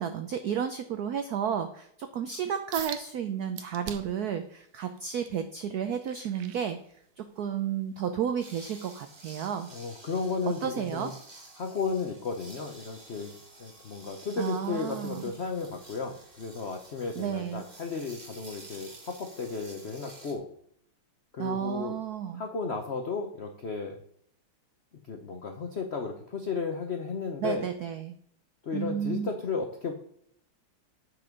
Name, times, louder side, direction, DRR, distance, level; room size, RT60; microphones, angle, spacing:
voice 1, 0.0-6.8 7.2-9.7 10.5-11.1 14.4-15.3 17.2-17.6 21.4-22.4 27.4-28.1 28.7-29.3, right 8 dB, 90° right, 9 dB, 0.8 m, -32 dB
sound 1, 2.7-3.1 3.6-4.2 4.7-7.3 7.8-8.0 8.6-8.7, right 10 dB, 70° right, 1.4 m, -42 dB
sound 2, 8.4-20.3, right 2 dB, 25° right, 1.2 m, -51 dB
voice 2, 9.7-11.1 11.6-13.3 13.6-20.5 21.3-22.0 22.3-24.0 25.1-27.7 28.6-29.9, left 4 dB, 75° left, 4 dB, 0.6 m, -34 dB
7.6 x 6.1 x 5.1 m, 0.67 s
omnidirectional pair, 2.4 m